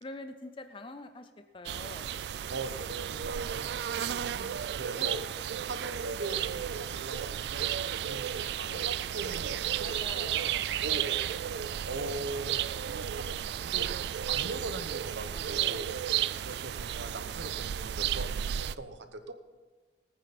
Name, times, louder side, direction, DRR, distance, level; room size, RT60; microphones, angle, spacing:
voice 1, 0.0-2.1 5.0-5.1 8.6-8.9 9.8-10.5 11.0-11.3 15.3-15.9 17.4-17.6, left 2 dB, 30° left, 8 dB, 0.5 m, -46 dB
sound 1, 1.7-18.8, right 10 dB, 70° right, 0.3 m, -33 dB
voice 2, 2.5-5.2 5.6-11.2 11.8-15.9 16.4-19.3, right 2 dB, 90° right, 9 dB, 1.0 m, -41 dB
19.0 x 9.4 x 4.2 m, 1.4 s
head